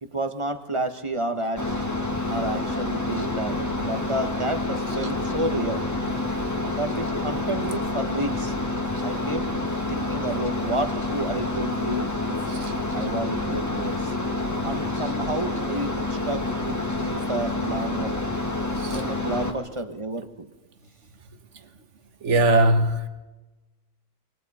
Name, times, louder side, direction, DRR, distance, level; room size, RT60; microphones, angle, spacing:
voice 1, 0.0-1.8 2.3-5.8 6.7-8.5 9.0-9.5 9.9-12.4 12.9-14.2 14.6-18.2 18.8-20.5 21.6-21.7, right 1 dB, 25° right, 1.2 m, -30 dB
sound 1, 1.6-19.5, left 2 dB, 15° left, 1.9 m, -28 dB
voice 2, 22.2-23.1, right 1 dB, 75° right, 1.6 m, -20 dB
27.5 x 23.5 x 4.3 m
omnidirectional pair, 1.2 m